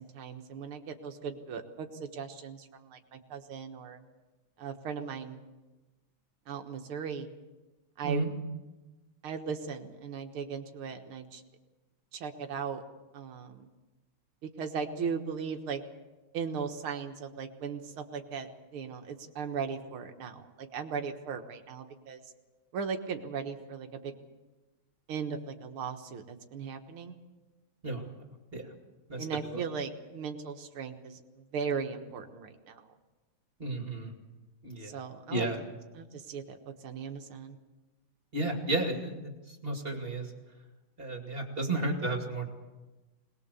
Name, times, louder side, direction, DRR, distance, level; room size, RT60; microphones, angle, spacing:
voice 1, 0.0-4.0 4.6-5.4 6.5-7.3 8.0-8.3 9.2-11.4 12.1-12.8 13.1-13.7 14.6-15.8 16.3-22.2 22.7-24.1 25.1-27.2 29.2-32.9 34.8-35.7 35.9-37.6, right 6 dB, 80° right, 5 dB, 2.3 m, -38 dB
voice 2, 33.6-34.1 34.6-35.0 35.3-35.6 38.3-40.3 41.0-42.5, right 2 dB, 25° right, 2 dB, 2.6 m, -32 dB
22.5 x 20.0 x 7.0 m, 1.1 s
omnidirectional pair, 2.3 m